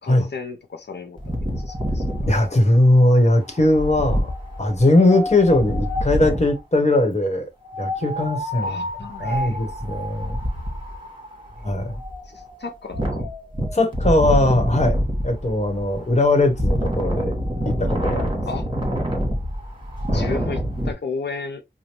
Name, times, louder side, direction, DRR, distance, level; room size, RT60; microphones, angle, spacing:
voice 1, 0.0-2.0 2.3-2.5 8.6-9.6 12.2-13.3 18.5-18.7 20.1-21.6, left 4 dB, 90° left, 0.5 m, -34 dB
Wind, 1.2-6.6 7.6-20.9, equal, 30° right, 1.5 m, -27 dB
voice 2, 2.3-4.3 4.6-7.5 7.8-8.8 9.2-10.4 11.6-12.0 13.7-17.4 17.6-18.4 20.1-20.3, left 1 dB, 40° left, 1.2 m, -19 dB
5.0 x 2.2 x 3.0 m
wide cardioid pair, 60°, 17 cm